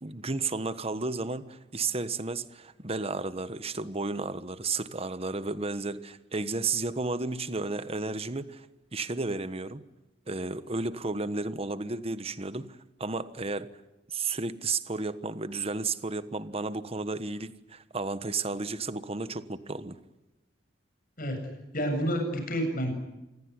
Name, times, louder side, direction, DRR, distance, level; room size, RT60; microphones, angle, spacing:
voice 1, 0.0-8.7 8.9-9.8 10.3-13.8 14.1-20.0, right 3 dB, 35° right, 1.3 m, -33 dB
voice 2, 21.2-22.9, equal, 50° left, 7.6 m, -30 dB
27.0 x 20.5 x 9.7 m
head